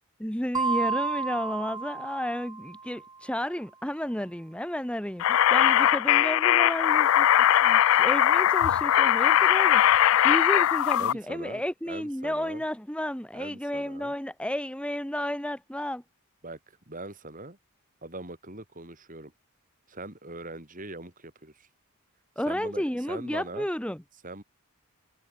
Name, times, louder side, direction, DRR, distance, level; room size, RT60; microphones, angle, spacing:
voice 1, 0.2-7.3 7.6-16.0 22.4-24.0, equal, 5° left, 1.4 m, -32 dB
sound 1, 0.5-3.0, right 4 dB, 20° right, 0.8 m, -31 dB
sound 2, 5.2-11.1, left 11 dB, 60° left, 0.3 m, -20 dB
voice 2, 11.0-12.6 13.3-14.1 16.4-16.6 16.9-17.6 18.0-19.3 19.9-21.7 22.5-23.7 24.2-24.4, right 2 dB, 35° right, 3.8 m, -41 dB
head